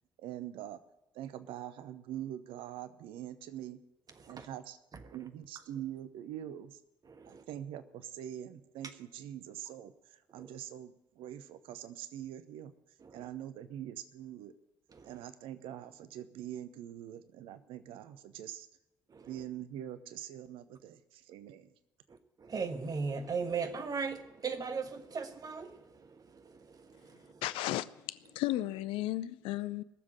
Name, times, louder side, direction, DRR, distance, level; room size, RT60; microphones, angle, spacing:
voice 1, 0.2-0.8 1.1-3.8 4.3-4.8 5.1-6.8 7.3-12.7 13.1-14.5 15.0-18.7 19.2-21.7, right 11 dB, 60° right, 0.8 m, -44 dB
voice 2, 7.1-7.4 10.4-10.5 13.0-13.2 14.9-15.1 19.1-19.3 22.1-27.4, right 5 dB, 40° right, 1.4 m, -38 dB
voice 3, 27.4-29.8, left 15 dB, 65° left, 0.5 m, -34 dB
17.5 x 7.4 x 8.7 m
figure-of-eight pair, 45°, 10 cm